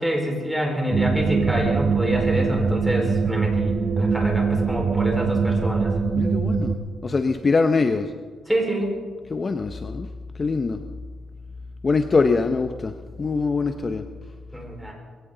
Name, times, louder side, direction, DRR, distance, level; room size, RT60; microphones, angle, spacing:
voice 1, 0.0-5.9 8.5-9.0 14.5-14.9, equal, 5° right, 0 dB, 4.8 m, -26 dB
sound 1, 0.9-6.8, right 4 dB, 40° right, 1.4 m, -22 dB
voice 2, 6.2-6.8 7.0-8.1 9.3-10.1 10.4-10.8 11.8-12.9 13.2-14.0, left 4 dB, 35° left, 8 dB, 0.8 m, -23 dB
22.0 x 17.0 x 3.9 m, 1.5 s
cardioid pair, 100°, 0 cm